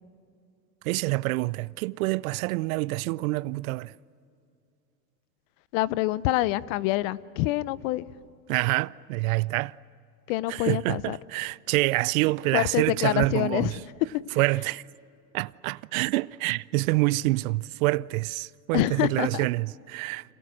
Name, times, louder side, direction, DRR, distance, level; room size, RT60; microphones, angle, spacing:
voice 1, 0.8-3.9 8.5-9.7 10.5-13.8 14.4-14.8 15.3-20.3, right 21 dB, 60° right, 0.6 m, -27 dB
voice 2, 5.7-8.0 10.3-11.2 12.5-13.7 18.7-19.5, left 17 dB, 55° left, 0.9 m, -26 dB
30.0 x 27.0 x 6.4 m
hypercardioid pair, 110°, 48 cm